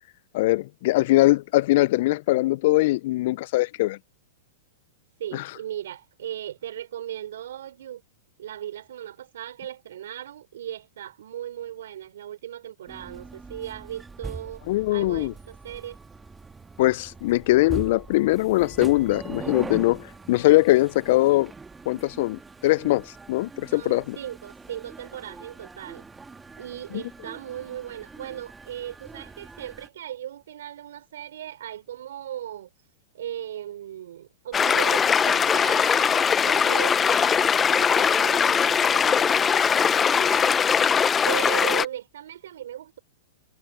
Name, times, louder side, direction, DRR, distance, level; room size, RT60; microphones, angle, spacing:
voice 1, 0.3-4.0 5.3-5.4 14.7-15.3 16.8-21.5 21.9-24.2 26.9-27.0, left 18 dB, 55° left, 0.5 m, -21 dB
voice 2, 5.2-8.0 8.4-16.0 23.7-26.0 26.6-32.7 33.1-40.9 41.2-43.0, right 11 dB, 70° right, 5.5 m, -37 dB
sound 1, 12.9-29.9, right 4 dB, 10° right, 1.7 m, -42 dB
sound 2, 34.5-41.9, left 7 dB, 20° left, 0.7 m, -21 dB
hypercardioid pair, 110°, 0 cm